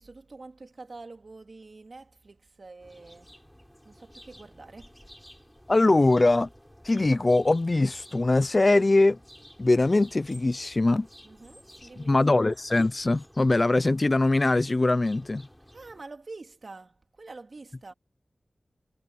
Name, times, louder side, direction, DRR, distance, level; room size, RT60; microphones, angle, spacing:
voice 1, 0.0-3.4 3.8-5.0 11.2-12.5 15.7-17.9, right 3 dB, 55° right, 2.6 m, -46 dB
sound 1, 2.8-16.0, equal, 5° left, 6.9 m, -53 dB
voice 2, 5.7-6.5 6.8-9.2 9.6-11.1 12.0-15.4, left 2 dB, 40° left, 0.7 m, -22 dB
wide cardioid pair, 65°, 0 cm